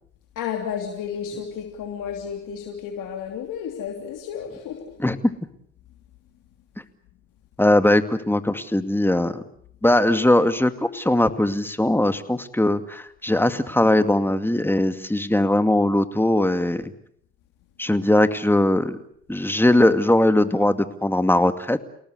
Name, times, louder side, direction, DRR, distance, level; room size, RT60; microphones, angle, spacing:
voice 1, 0.3-5.0, left 7 dB, 75° left, 3 dB, 3.2 m, -32 dB
voice 2, 5.0-5.3 7.6-9.4 9.8-16.8 17.8-19.0 19.3-21.8, left 1 dB, 5° left, 9 dB, 2.3 m, -20 dB
29.0 x 18.5 x 8.1 m, 0.67 s
hypercardioid pair, 55°, 32 cm